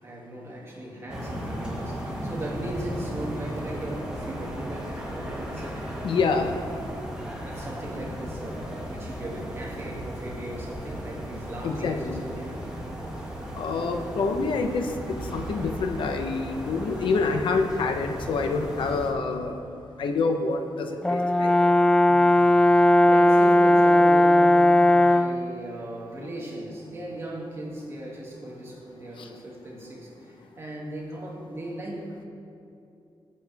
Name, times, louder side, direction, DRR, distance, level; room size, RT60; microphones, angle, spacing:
voice 1, 0.0-6.0 7.2-12.6 18.9-19.0 22.1-32.3, right 1 dB, 30° right, -3 dB, 2.7 m, -38 dB
sound 1, 1.1-19.1, equal, 10° right, 2.4 m, -36 dB
voice 2, 6.0-6.5 11.6-12.2 13.5-19.6 20.0-21.5 29.2-29.3, left 4 dB, 85° left, 5 dB, 1.1 m, -27 dB
Brass instrument, 21.0-25.5, left 1 dB, 10° left, 0.3 m, -17 dB
21.0 x 8.9 x 3.6 m, 2.7 s
wide cardioid pair, 135°, 8 cm